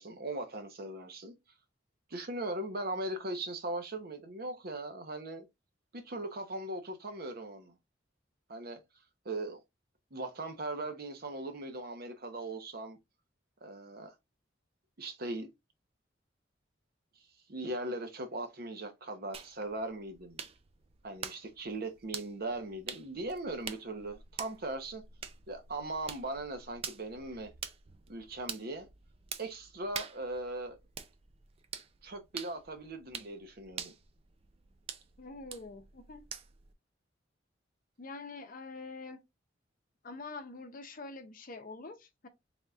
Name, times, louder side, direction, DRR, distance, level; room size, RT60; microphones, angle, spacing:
voice 1, 0.0-1.3 2.1-5.5 5.9-7.7 8.5-8.8 9.2-9.6 10.1-13.0 13.6-14.1 15.0-15.5 17.5-20.4 21.0-25.0 25.5-27.5 28.1-28.9 29.4-30.8 32.0-33.9, right 2 dB, 55° right, 0.8 m, -39 dB
sound 1, 19.3-36.7, right 6 dB, 30° right, 0.4 m, -46 dB
voice 2, 35.2-36.3 38.0-39.2 40.0-42.3, left 3 dB, 45° left, 0.6 m, -45 dB
4.0 x 3.5 x 2.3 m
head